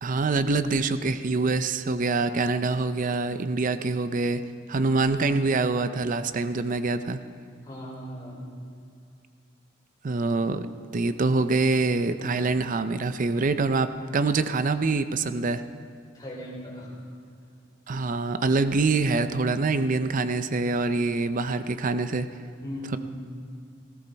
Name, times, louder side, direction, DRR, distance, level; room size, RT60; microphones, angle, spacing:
voice 1, 0.0-4.4 4.7-7.2 10.0-10.7 10.9-15.6 17.9-22.3, right 3 dB, 40° right, 11 dB, 0.5 m, -25 dB
voice 2, 7.6-8.4 16.1-16.9 22.6-23.0, equal, 20° left, -6 dB, 4.8 m, -38 dB
18.5 x 15.5 x 4.1 m, 2.3 s
head